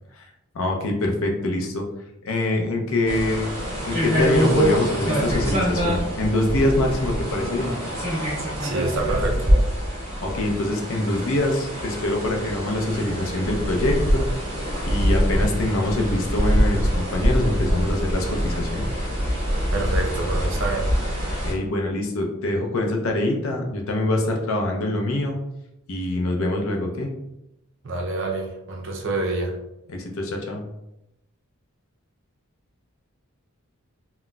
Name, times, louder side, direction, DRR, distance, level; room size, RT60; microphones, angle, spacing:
voice 1, 0.5-1.8 2.2-3.6 3.9-7.7 10.2-14.3 14.9-18.9 21.5-25.4 25.9-27.1 29.9-30.6, left 1 dB, 65° left, 1 dB, 0.5 m, -24 dB
sound 1, 3.1-21.5, equal, 35° right, 1.3 m, -24 dB
voice 2, 8.6-9.5 19.7-20.9 27.8-29.5, right 2 dB, 55° right, 0 dB, 0.5 m, -27 dB
3.9 x 2.1 x 2.3 m, 0.89 s
head